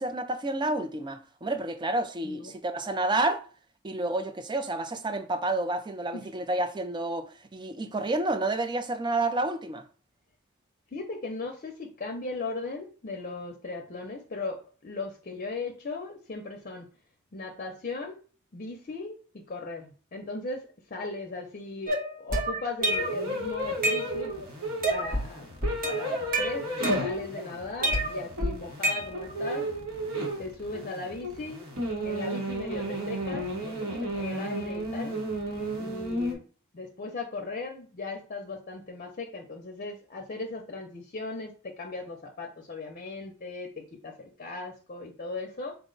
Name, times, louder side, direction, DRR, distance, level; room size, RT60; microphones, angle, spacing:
voice 1, 0.0-3.4 3.8-9.8, right 2 dB, 20° right, 0.4 m, -29 dB
voice 2, 2.2-2.5 6.1-6.3 10.9-16.9 17.3-18.2 18.5-24.3 24.9-25.5 25.9-26.7 27.0-29.7 30.4-31.7 32.0-35.1 35.8-36.5 36.7-45.8, left 3 dB, 40° left, 0.6 m, -38 dB
sound 1, 21.9-23.3 23.6-24.4 24.8-25.3 25.6-27.4 27.8-29.4, right 1 dB, 45° right, 0.8 m, -29 dB
sound 2, 22.8-36.4, right 1 dB, 75° right, 1.2 m, -33 dB
4.3 x 2.1 x 3.8 m
head